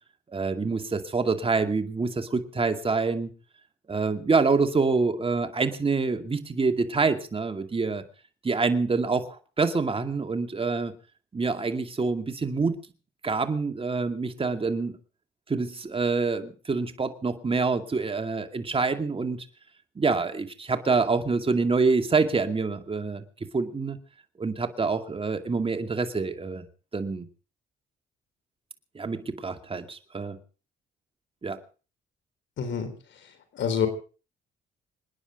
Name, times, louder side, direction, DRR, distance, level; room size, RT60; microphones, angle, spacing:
voice 1, 0.3-3.3 3.9-8.0 8.4-10.9 11.3-12.8 13.2-15.0 15.5-19.4 20.0-23.2 23.5-24.0 24.4-26.7 26.9-27.3 28.9-30.4 31.4-31.6, right 4 dB, 30° right, 7 dB, 2.3 m, -26 dB
voice 2, 32.6-32.9 33.5-33.9, left 7 dB, 70° left, 8 dB, 4.0 m, -26 dB
26.5 x 10.0 x 5.1 m, 0.38 s
cardioid pair, 90°, 20 cm